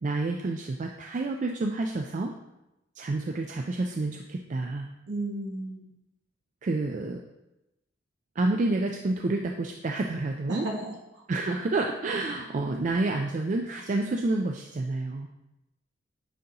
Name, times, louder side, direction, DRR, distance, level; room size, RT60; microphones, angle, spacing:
voice 1, 0.0-2.3 3.0-4.9 6.6-7.2 8.4-10.7 11.3-15.3, right 2 dB, 40° right, 3 dB, 0.4 m, -29 dB
voice 2, 5.1-5.9 10.5-10.9, right 1 dB, 65° right, -1 dB, 1.3 m, -33 dB
9.2 x 3.9 x 2.9 m, 0.91 s
head